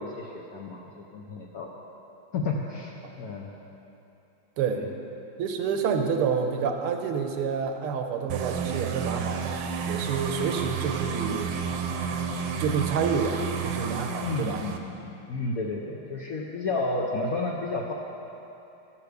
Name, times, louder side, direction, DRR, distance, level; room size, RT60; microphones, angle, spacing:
voice 1, 0.0-1.7 2.3-3.5 4.7-4.9 14.2-17.9, left 3 dB, 65° left, -2 dB, 0.8 m, -32 dB
voice 2, 5.4-11.6 12.6-14.6, right 6 dB, 90° right, 5 dB, 1.7 m, -28 dB
sound 1, 8.3-14.8, right 6 dB, 70° right, 1.3 m, -31 dB
13.0 x 5.8 x 6.6 m, 2.9 s
omnidirectional pair, 2.4 m